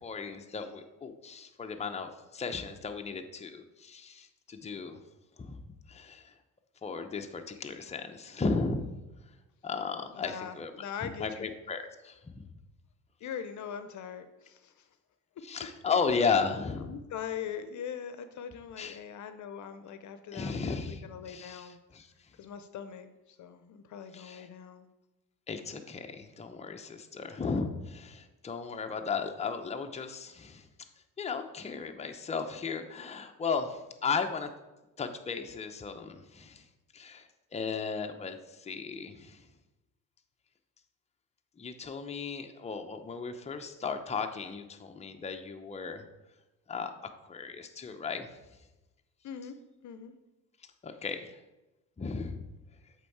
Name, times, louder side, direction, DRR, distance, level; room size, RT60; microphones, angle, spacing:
voice 1, 0.0-5.0 5.4-5.6 5.9-6.3 6.8-8.9 9.6-12.5 15.4-16.9 18.8-19.0 20.3-22.1 24.1-24.5 25.5-30.7 31.2-34.5 35.0-36.6 36.9-39.5 41.6-46.0 46.7-46.9 47.3-48.3 50.8-51.4 52.0-52.4, left 5 dB, 20° left, 6 dB, 0.7 m, -35 dB
voice 2, 10.1-11.5 13.2-14.8 16.8-21.8 22.4-24.9 49.2-49.6 49.8-50.1, left 8 dB, 55° left, 10 dB, 0.7 m, -41 dB
8.2 x 3.7 x 4.6 m, 1.0 s
supercardioid pair, 75°, 35 cm